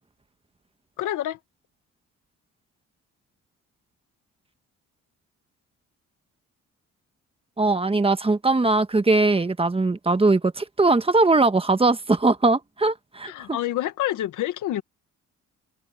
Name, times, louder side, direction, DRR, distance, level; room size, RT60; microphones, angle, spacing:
voice 1, 1.0-1.4 13.2-14.8, left 13 dB, 85° left, 1.9 m, -27 dB
voice 2, 7.6-13.6, right 3 dB, 20° right, 1.4 m, -20 dB
cardioid pair, 90°, 30 cm